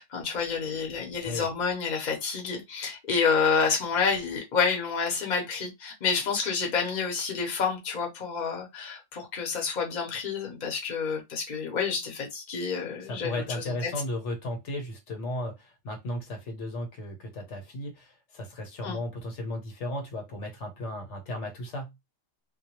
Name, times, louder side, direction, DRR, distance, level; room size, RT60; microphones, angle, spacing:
voice 1, 0.0-13.9 18.8-19.0, left 5 dB, 45° left, 0.8 m, -29 dB
voice 2, 13.0-21.9, left 1 dB, 70° left, 1.1 m, -35 dB
2.2 x 2.1 x 2.8 m
omnidirectional pair, 1.3 m